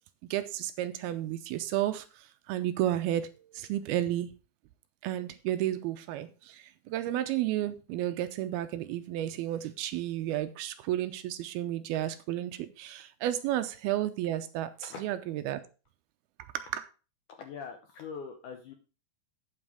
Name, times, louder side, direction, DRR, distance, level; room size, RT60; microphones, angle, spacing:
voice 1, 0.3-4.3 5.0-14.7 15.0-15.6 16.5-16.8, right 13 dB, 80° right, 2.4 m, -32 dB
voice 2, 17.4-18.7, left 6 dB, 75° left, 1.9 m, -42 dB
8.8 x 7.6 x 4.9 m
omnidirectional pair, 4.7 m